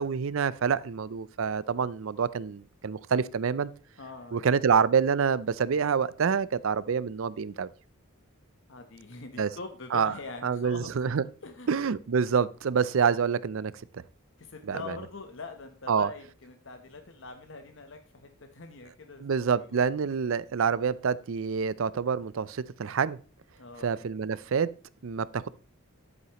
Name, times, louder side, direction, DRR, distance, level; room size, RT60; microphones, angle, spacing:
voice 1, 0.0-3.7 4.3-7.7 9.4-9.5 9.9-10.1 10.4-11.2 11.7-13.7 14.6-15.0 15.9-16.1 19.2-23.2 23.8-24.7 25.0-25.5, right 6 dB, 65° right, 0.4 m, -27 dB
voice 2, 4.0-4.6 8.7-10.9 11.4-11.7 14.4-19.8 23.6-23.9, left 3 dB, 55° left, 1.0 m, -43 dB
11.0 x 8.0 x 3.0 m
head